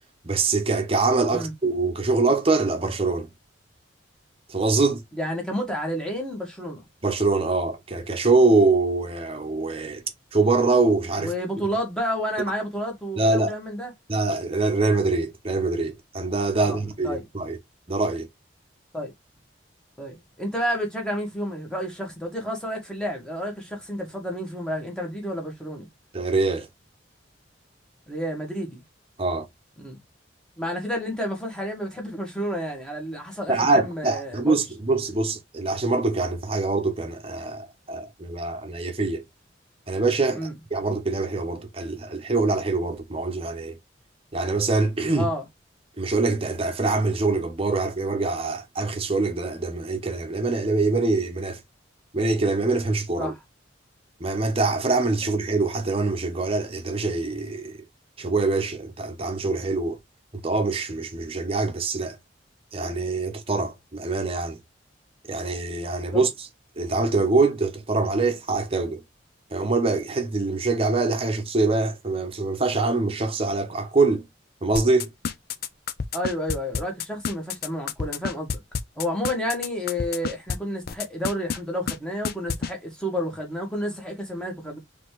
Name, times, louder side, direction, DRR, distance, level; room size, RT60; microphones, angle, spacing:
voice 1, 0.2-3.3 4.5-5.0 7.0-10.0 10.3-11.3 13.2-13.5 14.1-17.6 17.9-18.3 26.1-26.7 29.2-29.5 33.5-39.2 39.9-43.8 44.3-45.3 46.0-51.6 52.1-53.3 54.2-57.8 58.2-60.0 60.4-62.2 62.7-64.6 65.3-66.3 66.8-69.0 69.5-74.2 74.6-75.1, right 3 dB, 30° right, 0.9 m, -24 dB
voice 2, 5.1-6.9 11.2-13.9 16.6-17.2 18.9-19.1 20.0-25.9 28.1-28.8 29.8-30.0 30.6-34.6 40.3-40.5 45.1-45.5 53.2-53.4 66.1-66.2 76.1-78.5 78.9-84.8, equal, 5° left, 1.5 m, -30 dB
sound 1, 74.8-80.6 80.9-81.6 81.9-82.0 82.2-82.7, left 6 dB, 50° left, 0.4 m, -28 dB
4.1 x 3.4 x 3.2 m
head